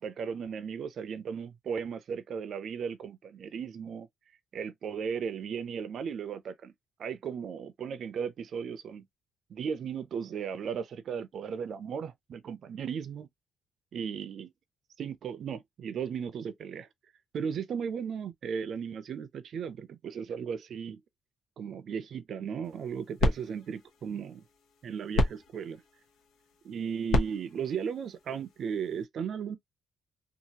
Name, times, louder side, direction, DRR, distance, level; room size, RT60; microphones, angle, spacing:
voice 1, 0.0-4.1 4.5-6.7 7.0-9.1 9.5-13.3 13.9-14.5 15.0-16.9 17.3-21.0 21.6-24.4 24.8-25.8 26.6-29.6, right 7 dB, 60° right, 0.4 m, -36 dB
sound 1, 22.6-29.0, left 1 dB, 85° left, 0.9 m, -33 dB
2.8 x 2.4 x 2.8 m
cardioid pair, 90°, 0 cm